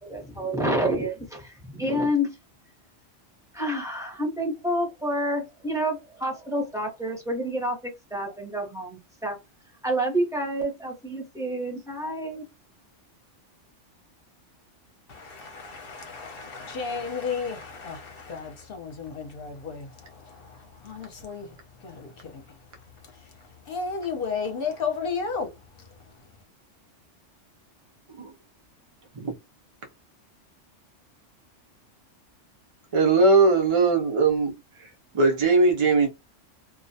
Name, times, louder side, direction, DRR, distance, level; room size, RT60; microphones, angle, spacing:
voice 1, 0.0-2.3 3.5-9.4 9.8-12.5, equal, 5° right, 0.6 m, -28 dB
voice 2, 15.1-22.6 23.0-23.3 23.7-25.5 25.8-25.9, left 5 dB, 55° left, 0.8 m, -34 dB
voice 3, 32.9-34.5 35.1-36.1, right 3 dB, 50° right, 0.3 m, -20 dB
2.3 x 2.1 x 2.6 m
omnidirectional pair, 1.3 m